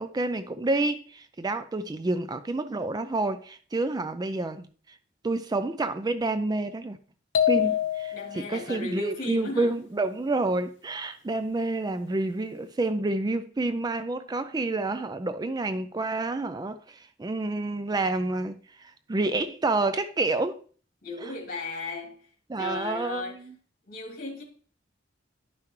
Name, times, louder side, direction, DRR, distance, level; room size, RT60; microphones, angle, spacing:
voice 1, 0.0-5.0 5.2-7.0 7.5-20.6 21.2-21.3 22.5-23.5, right 2 dB, 20° right, 0.4 m, -29 dB
sound 1, 7.3-8.5, left 10 dB, 65° left, 1.0 m, -25 dB
voice 2, 8.1-9.7 21.0-22.2 22.6-23.4 23.9-24.4, left 2 dB, 50° left, 2.5 m, -35 dB
11.0 x 5.8 x 3.1 m
head